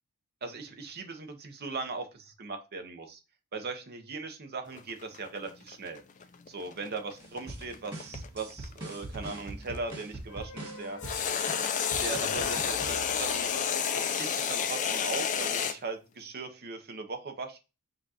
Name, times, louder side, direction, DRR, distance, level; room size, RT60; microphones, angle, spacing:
voice 1, 0.4-3.2 3.5-6.0 6.5-11.0 12.0-13.5 13.9-17.6, right 3 dB, 45° right, 6 dB, 0.8 m, -39 dB
sound 1, 4.7-9.9 11.0-15.8, left 7 dB, 35° left, 0.4 m, -31 dB
sound 2, 7.2-13.7, right 2 dB, 20° right, 2.2 m, -43 dB
sound 3, 10.3-14.3, left 4 dB, 85° left, 0.6 m, -42 dB
5.1 x 2.4 x 4.1 m, 0.29 s
head